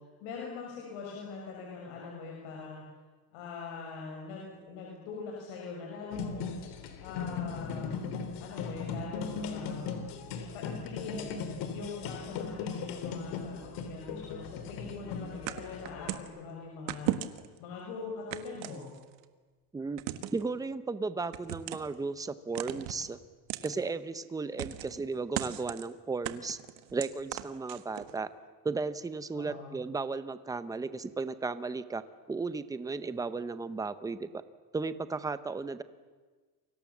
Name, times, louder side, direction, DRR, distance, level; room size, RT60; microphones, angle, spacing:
voice 1, 0.2-2.8 3.3-6.5 7.0-8.0 8.4-9.9 10.5-11.3 11.7-17.2 17.6-18.9 29.3-29.7, left 4 dB, 85° left, -2 dB, 6.7 m, -42 dB
sound 1, 6.1-16.2, left 5 dB, 65° left, 3.5 m, -38 dB
sound 2, 15.5-16.3 16.9-17.6 18.3-19.2 20.0-20.5 21.3-21.9 22.6-23.0 23.5-23.7 24.6-25.0 25.3-25.9 26.2-28.1, right 15 dB, 85° right, 1.8 m, -36 dB
voice 2, 20.3-23.2 23.6-26.6 26.9-28.3 28.6-32.0 32.3-34.3 34.7-35.8, right 4 dB, 10° right, 12 dB, 0.7 m, -35 dB
29.5 x 24.5 x 7.3 m, 1.4 s
cardioid pair, 165°, 45 cm